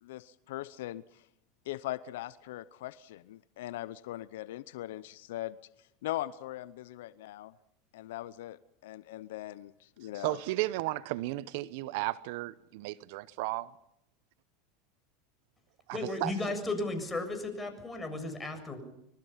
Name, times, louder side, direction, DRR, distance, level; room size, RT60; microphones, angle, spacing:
voice 1, 0.0-1.2 1.7-5.6 6.0-7.5 7.9-10.4, left 15 dB, 75° left, 0.8 m, -40 dB
voice 2, 10.1-13.7 15.9-16.5, right 18 dB, 65° right, 0.8 m, -34 dB
voice 3, 15.9-18.8, left 2 dB, 15° left, 7.1 m, -35 dB
25.0 x 22.5 x 5.8 m
hypercardioid pair, 105°, 0 cm